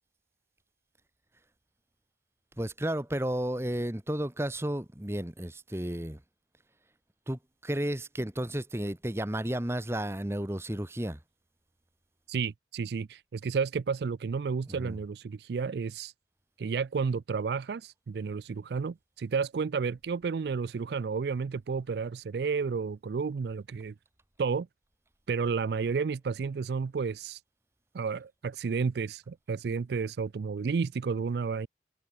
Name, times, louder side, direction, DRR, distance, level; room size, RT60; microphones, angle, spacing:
voice 1, 2.6-6.2 7.3-11.2 14.8-15.0, right 1 dB, 15° right, 1.2 m, -32 dB
voice 2, 12.3-16.1 16.6-23.9 24.4-24.7 25.3-27.4 27.9-31.7, right 5 dB, 65° right, 0.4 m, -31 dB
head